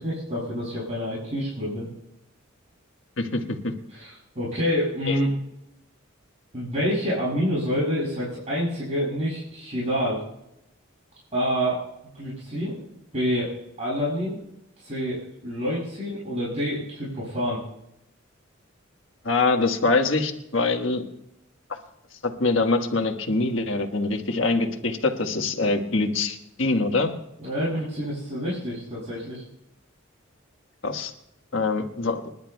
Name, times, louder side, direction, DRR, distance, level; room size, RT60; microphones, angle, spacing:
voice 1, 0.0-1.9 3.9-5.3 6.5-10.2 11.3-11.8 12.1-12.8 13.1-13.5 13.8-14.4 14.8-17.6 27.4-29.4, equal, 35° right, -8 dB, 6.8 m, -27 dB
voice 2, 3.2-3.7 5.1-5.2 19.2-21.0 21.7-21.8 22.2-27.1 30.8-31.1 31.5-32.2, left 3 dB, 65° left, 4 dB, 1.5 m, -24 dB
30.0 x 11.0 x 2.3 m, 0.81 s
head